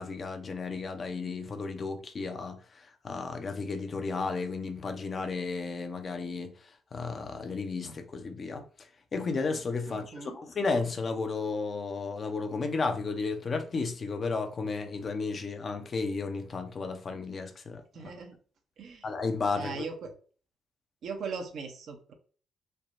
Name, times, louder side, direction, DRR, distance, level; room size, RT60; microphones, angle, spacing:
voice 1, 0.0-6.5 6.9-8.6 9.1-18.1 19.0-19.9, left 4 dB, 45° left, 0.5 m, -33 dB
voice 2, 9.9-10.4 17.9-18.4 18.8-19.0 19.6-20.1 21.0-22.1, right 5 dB, 65° right, 0.6 m, -39 dB
3.3 x 2.0 x 2.5 m
hypercardioid pair, 45°, 0 cm